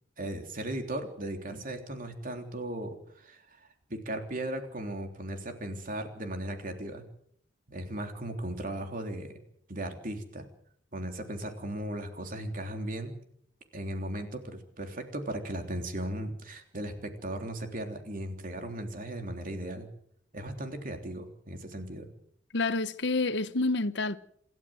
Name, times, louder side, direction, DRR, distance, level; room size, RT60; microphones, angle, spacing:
voice 1, 0.2-3.4 3.9-7.0 7.7-9.4 9.7-10.5 10.9-13.1 13.7-19.9 20.3-22.1, right 1 dB, 50° right, 3.4 m, -37 dB
voice 2, 22.5-24.2, left 3 dB, 70° left, 1.0 m, -28 dB
27.0 x 12.5 x 7.8 m
head